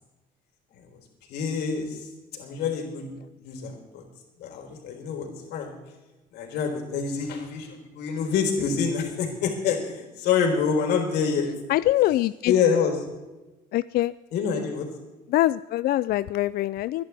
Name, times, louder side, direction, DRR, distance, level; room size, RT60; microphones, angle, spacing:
voice 1, 1.3-3.1 3.4-4.0 4.4-5.7 6.3-11.5 12.5-12.9 14.3-14.9, left 6 dB, 80° left, 2 dB, 4.1 m, -26 dB
voice 2, 11.7-12.5 13.7-14.1 15.3-17.0, left 15 dB, 65° left, 15 dB, 0.4 m, -23 dB
24.5 x 11.0 x 3.5 m, 1.1 s
cardioid pair, 110°, 17 cm